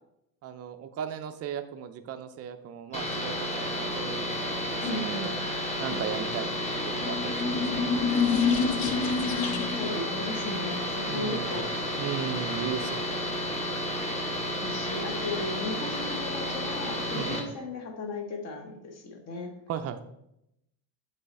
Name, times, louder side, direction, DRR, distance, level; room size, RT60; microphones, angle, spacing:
voice 1, 0.4-5.4 5.8-7.7 11.1-11.7 12.0-13.3 17.1-17.4 19.7-20.0, right 8 dB, 35° right, 9 dB, 0.4 m, -37 dB
sound 1, 2.9-17.4, left 1 dB, 15° left, 1.0 m, -32 dB
voice 2, 4.8-5.4 5.9-6.1 9.2-11.7 14.6-19.5, left 2 dB, 35° left, 4 dB, 1.1 m, -36 dB
sound 2, 7.0-10.0, left 6 dB, 55° left, 0.7 m, -27 dB
7.6 x 3.3 x 4.1 m, 0.81 s
cardioid pair, 140°, 44 cm